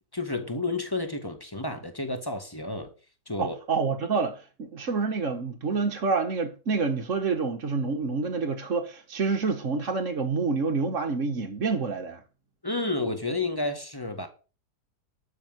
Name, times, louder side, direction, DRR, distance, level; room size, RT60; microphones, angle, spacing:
voice 1, 0.1-2.9 3.3-3.6 12.6-14.3, left 2 dB, 10° left, 1.9 m, -31 dB
voice 2, 3.4-12.2, right 4 dB, 45° right, 1.5 m, -28 dB
12.0 x 6.5 x 8.0 m
omnidirectional pair, 2.0 m